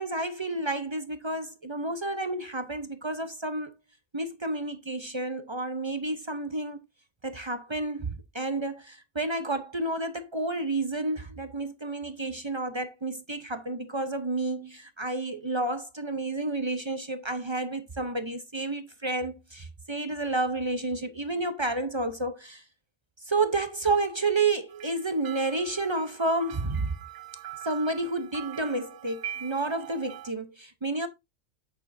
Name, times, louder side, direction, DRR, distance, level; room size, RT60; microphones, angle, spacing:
voice 1, 0.0-3.7 4.1-6.8 7.2-22.6 23.2-26.9 27.6-31.1, right 2 dB, 30° right, 0.6 m, -30 dB
sound 1, 24.7-30.3, right 11 dB, 85° right, 0.3 m, -42 dB
8.2 x 6.9 x 2.6 m
omnidirectional pair, 1.3 m